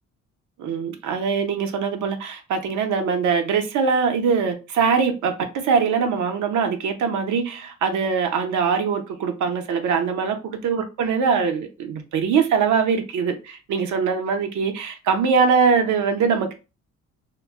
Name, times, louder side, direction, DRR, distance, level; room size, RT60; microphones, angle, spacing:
voice 1, 0.6-16.5, right 6 dB, 75° right, 0.7 m, -22 dB
2.2 x 2.0 x 3.4 m
cardioid pair, 90°, 30 cm